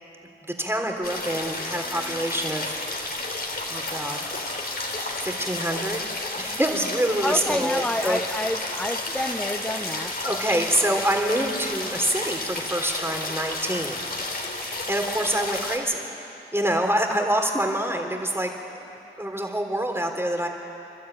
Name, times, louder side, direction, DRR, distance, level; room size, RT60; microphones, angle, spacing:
voice 1, 0.6-2.8 3.7-4.2 5.2-6.0 6.4-8.2 10.2-14.0 14.9-16.1 16.5-18.5 18.9-20.5, right 1 dB, 10° right, 3 dB, 3.4 m, -26 dB
sound 1, 1.0-15.8, left 2 dB, 50° left, 3.1 m, -31 dB
voice 2, 7.2-10.2, left 1 dB, 5° left, 6 dB, 0.9 m, -28 dB
29.0 x 12.0 x 9.1 m, 3.0 s
cardioid pair, 45°, 21 cm